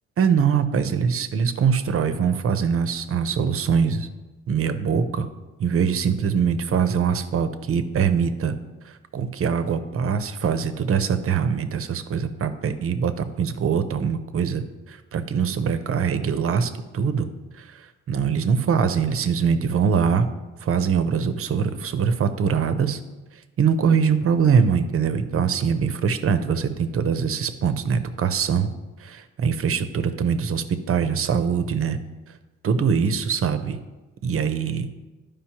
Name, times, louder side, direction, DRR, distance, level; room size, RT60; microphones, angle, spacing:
voice 1, 0.2-4.1 4.5-5.3 5.6-8.5 8.9-17.3 17.6-20.3 20.6-23.0 23.6-28.7 29.0-32.0 32.6-33.8 34.2-34.9, right 6 dB, 50° right, 10 dB, 0.6 m, -23 dB
11.5 x 5.1 x 2.9 m, 1.2 s
cardioid pair, 90°, 30 cm